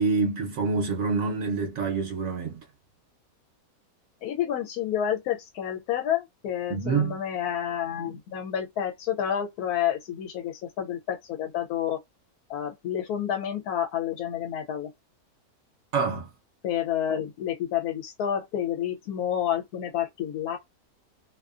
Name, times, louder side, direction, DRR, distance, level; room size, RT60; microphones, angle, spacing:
voice 1, 0.0-2.6 6.7-7.2 15.9-16.3, right 4 dB, 65° right, 1.0 m, -26 dB
voice 2, 4.2-12.0 12.5-14.9 16.6-20.6, left 10 dB, 80° left, 1.1 m, -29 dB
2.7 x 2.3 x 2.3 m
omnidirectional pair, 1.6 m